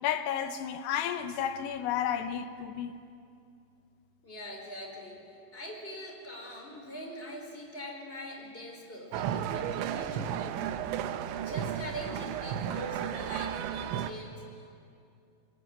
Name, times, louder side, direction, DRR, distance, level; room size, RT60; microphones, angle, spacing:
voice 1, 0.0-2.9, left 9 dB, 75° left, 2.7 m, -32 dB
voice 2, 4.2-5.2 5.5-14.7, equal, 15° left, 3.8 m, -43 dB
sound 1, 9.1-14.1, right 9 dB, 80° right, 3.1 m, -33 dB
22.5 x 22.5 x 9.5 m
omnidirectional pair, 5.6 m